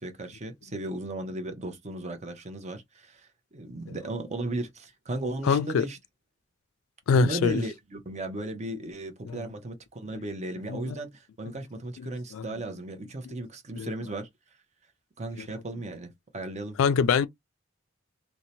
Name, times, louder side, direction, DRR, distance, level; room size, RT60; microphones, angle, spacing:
voice 1, 0.0-6.0 7.1-14.3 15.2-16.8, right 2 dB, 35° right, 0.6 m, -36 dB
voice 2, 5.4-5.9 7.1-7.6 9.3-9.5 10.7-11.0 12.0-12.5 13.2-13.3 13.8-13.9 15.4-15.5 16.8-17.3, left 6 dB, 75° left, 0.3 m, -25 dB
2.7 x 2.1 x 2.7 m
head